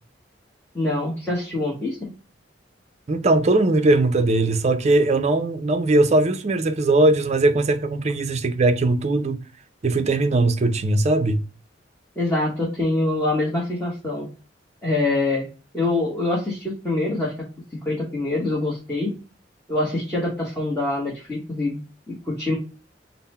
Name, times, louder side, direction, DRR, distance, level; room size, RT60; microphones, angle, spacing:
voice 1, 0.7-2.1 12.2-14.3 14.8-15.5 15.7-17.3 17.8-19.1 19.7-21.8 22.1-22.6, left 2 dB, 10° left, 0.9 m, -24 dB
voice 2, 3.1-9.4 9.8-11.4, right 2 dB, 35° right, 0.4 m, -20 dB
3.7 x 2.0 x 4.1 m
head